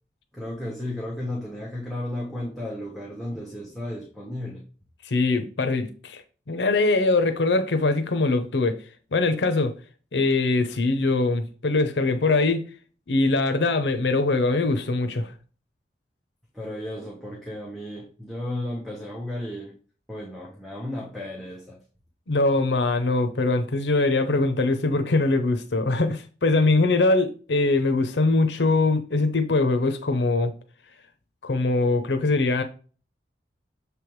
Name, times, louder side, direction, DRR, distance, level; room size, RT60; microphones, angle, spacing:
voice 1, 0.3-4.6 16.5-19.7 20.1-21.8, left 1 dB, ahead, 1.1 m, -34 dB
voice 2, 5.0-6.2 6.5-8.8 9.1-9.7 10.1-12.6 13.1-15.3 22.3-30.5 31.4-32.6, left 3 dB, 85° left, 0.7 m, -22 dB
6.8 x 3.4 x 4.6 m
head